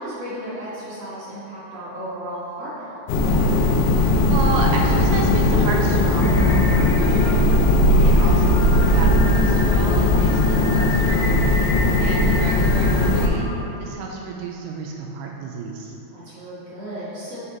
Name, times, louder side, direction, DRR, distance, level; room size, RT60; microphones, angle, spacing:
voice 1, 0.0-3.0 11.6-12.1 16.1-17.4, right 1 dB, 65° right, -11 dB, 1.6 m, -34 dB
sound 1, 3.1-13.3, left 1 dB, 80° left, 2.1 m, -18 dB
voice 2, 4.0-7.4 8.0-11.4 12.0-13.5 13.8-16.0, right 3 dB, 80° right, 0 dB, 2.4 m, -31 dB
Singing, 6.2-13.8, left 2 dB, 65° left, 2.3 m, -32 dB
6.6 x 4.8 x 4.3 m, 2.9 s
omnidirectional pair, 4.8 m